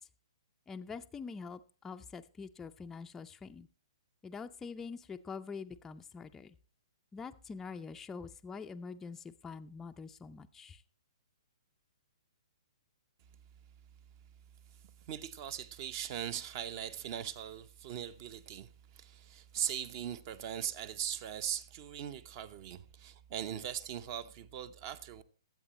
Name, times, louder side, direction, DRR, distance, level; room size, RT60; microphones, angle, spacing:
voice 1, 0.7-3.7 4.2-6.6 7.1-10.8, left 5 dB, 10° left, 0.4 m, -45 dB
voice 2, 15.1-25.2, right 10 dB, 35° right, 0.8 m, -40 dB
21.0 x 8.2 x 3.0 m
figure-of-eight pair, 120°, 3 cm